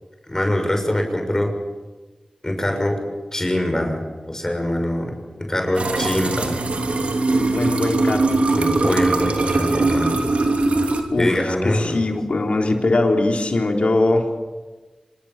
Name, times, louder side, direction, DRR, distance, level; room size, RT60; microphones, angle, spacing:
voice 1, 0.3-1.5 2.4-3.0 3.3-4.0 4.3-6.6 8.5-10.2 11.1-12.0, left 1 dB, 25° left, 4 dB, 6.4 m, -23 dB
sound 1, 5.7-11.0, right 2 dB, 85° right, 3.0 m, -21 dB
voice 2, 7.3-8.4 11.1-14.3, left 2 dB, 70° left, 2 dB, 3.7 m, -21 dB
26.5 x 25.5 x 7.6 m, 1.3 s
cardioid pair, 45°, 2 cm